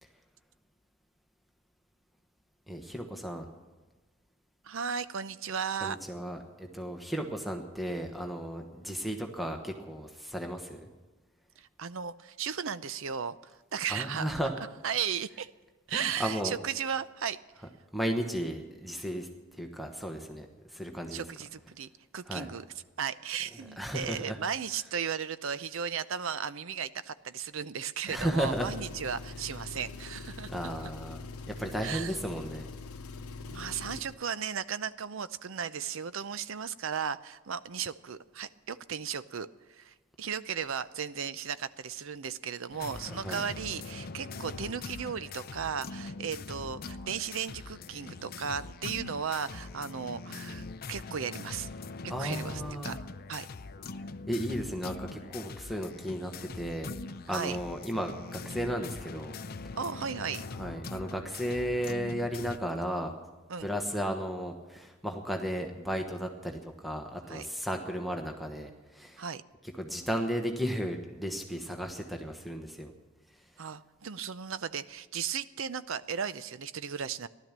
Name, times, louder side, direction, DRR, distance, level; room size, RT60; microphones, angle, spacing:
voice 1, 2.7-3.4 5.8-10.9 13.9-14.5 15.9-16.6 17.9-21.2 22.3-22.5 23.8-24.4 28.1-28.7 30.5-32.7 43.0-43.4 52.1-52.9 54.3-56.9 57.3-59.4 59.6-59.8 60.6-63.1 63.6-69.2 69.8-72.9, equal, ahead, 3 dB, 1.1 m, -34 dB
voice 2, 4.6-6.0 11.6-14.4 14.8-15.5 15.9-17.4 21.1-22.6 23.0-30.5 30.8-30.9 31.8-32.2 33.5-51.7 52.2-53.0 53.3-53.5 57.3-57.6 59.8-60.4 63.5-63.7 67.3-67.5 69.2-69.4 73.6-77.3, right 7 dB, 60° right, 14 dB, 0.6 m, -35 dB
Engine, 28.3-34.1, left 3 dB, 85° left, 0.8 m, -43 dB
sound 1, 42.7-62.6, left 3 dB, 40° left, 0.5 m, -42 dB
15.5 x 12.0 x 7.4 m, 1.2 s
head